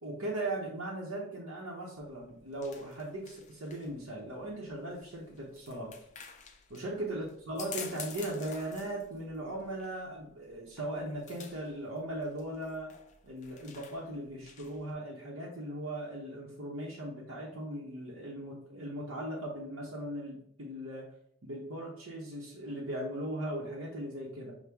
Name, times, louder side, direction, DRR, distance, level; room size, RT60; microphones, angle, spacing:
voice 1, 0.0-5.9 6.7-12.9 13.2-21.1 21.4-24.5, right 1 dB, 70° right, -4 dB, 0.8 m, -38 dB
sound 1, 2.0-14.9, left 6 dB, 35° left, 0.4 m, -50 dB
5.9 x 2.1 x 3.4 m, 0.69 s
head